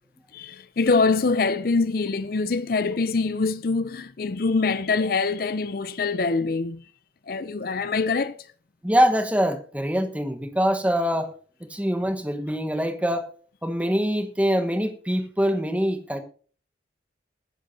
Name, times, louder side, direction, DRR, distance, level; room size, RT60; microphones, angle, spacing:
voice 1, 0.3-6.8 7.3-8.5, left 4 dB, 50° left, 0.5 m, -24 dB
voice 2, 8.8-11.3 11.7-13.3 13.6-16.2, equal, 5° right, 1.1 m, -24 dB
20.5 x 10.0 x 2.7 m
head